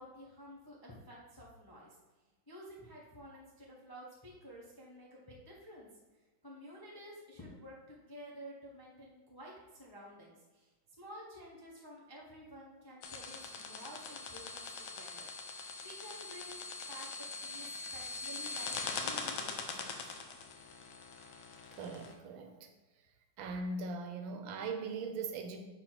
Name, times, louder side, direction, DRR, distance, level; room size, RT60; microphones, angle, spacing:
voice 1, 0.0-2.0 2.5-5.9 6.4-10.7 11.0-15.3 15.6-20.1, equal, 25° left, -4 dB, 0.5 m, -52 dB
sound 1, 13.0-22.1, left 4 dB, 85° left, 1.5 m, -42 dB
voice 2, 21.7-22.7 23.4-25.7, right 3 dB, 80° right, 5 dB, 1.5 m, -40 dB
4.7 x 4.0 x 5.8 m, 1.2 s
omnidirectional pair, 2.2 m